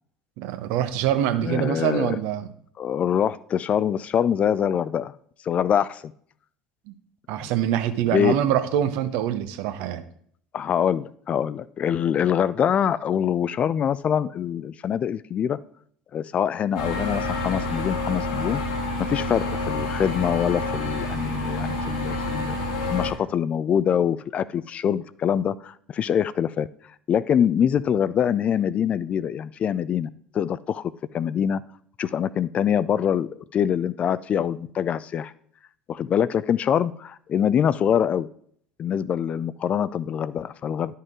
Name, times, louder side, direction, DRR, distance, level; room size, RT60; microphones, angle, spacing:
voice 1, 0.4-2.5 6.9-7.0 7.3-10.0, right 11 dB, 65° right, 11 dB, 0.7 m, -24 dB
voice 2, 1.4-2.2 2.8-5.1 5.5-6.0 7.4-7.5 8.1-8.4 10.5-15.6 16.1-18.6 19.1-26.7 27.1-30.1 30.3-31.6 32.0-35.3 35.9-38.3 38.8-41.0, left 8 dB, 40° left, 17 dB, 0.3 m, -24 dB
sound 1, 16.7-23.1, left 2 dB, 80° left, 1.7 m, -28 dB
10.5 x 5.5 x 3.7 m, 0.63 s
hypercardioid pair, 70°, 3 cm